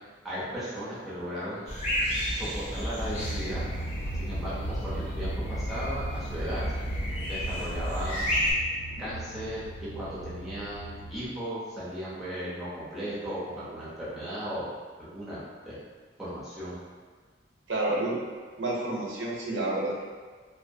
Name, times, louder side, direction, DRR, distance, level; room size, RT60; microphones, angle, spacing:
voice 1, 0.2-1.7 2.3-3.7 4.1-6.6 7.3-8.3 9.0-14.6 15.0-15.8 16.2-16.8, equal, ahead, -11 dB, 0.7 m, -36 dB
sound 1, 1.7-8.5, equal, 40° left, 0.7 m, -32 dB
sound 2, 3.0-11.3, right 2 dB, 80° left, 0.4 m, -39 dB
voice 2, 17.7-18.2 18.6-20.0, right 2 dB, 80° right, -4 dB, 0.7 m, -29 dB
2.6 x 2.1 x 2.6 m, 1.5 s
head